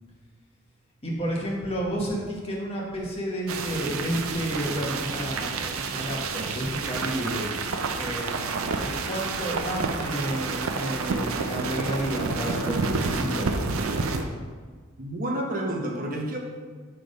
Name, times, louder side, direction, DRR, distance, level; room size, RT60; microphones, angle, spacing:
voice 1, 1.0-7.5 7.9-13.5, equal, 30° left, -3 dB, 1.2 m, -31 dB
sound 1, 3.5-14.3, right 4 dB, 80° right, 0.5 m, -29 dB
voice 2, 15.0-16.4, right 1 dB, 40° right, 0 dB, 0.9 m, -29 dB
6.1 x 3.4 x 5.2 m, 1.5 s
head